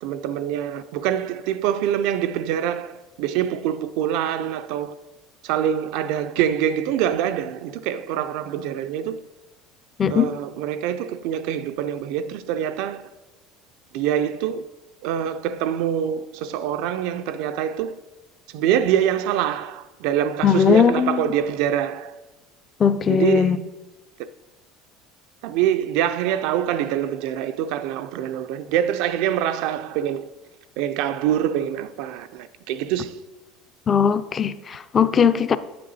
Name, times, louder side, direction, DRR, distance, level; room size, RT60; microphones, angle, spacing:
voice 1, 0.0-5.0 5.4-9.2 10.1-13.1 13.9-14.7 15.0-18.0 18.5-22.2 23.1-23.6 25.4-30.3 30.8-33.2, right 10 dB, 60° right, 0.4 m, -25 dB
voice 2, 10.0-10.3 20.4-21.3 22.8-23.6 33.9-35.6, left 7 dB, 20° left, 0.3 m, -19 dB
9.4 x 7.6 x 4.1 m
cardioid pair, 180°, 0 cm